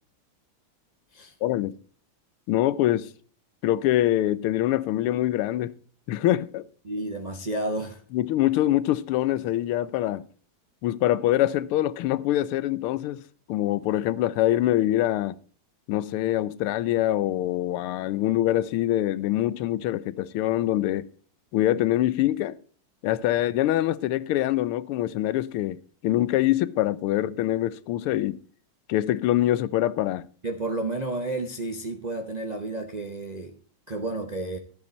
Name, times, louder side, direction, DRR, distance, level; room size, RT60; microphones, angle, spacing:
voice 1, 1.4-1.7 2.5-3.1 3.6-5.8 6.1-6.6 8.1-10.2 10.8-13.2 13.5-15.4 15.9-21.1 21.5-22.6 23.0-28.4 28.9-30.3, left 14 dB, 85° left, 1.5 m, -24 dB
voice 2, 6.8-8.0 30.4-33.6 33.9-34.6, right 2 dB, 60° right, 0.4 m, -31 dB
12.0 x 8.6 x 4.3 m
omnidirectional pair, 2.4 m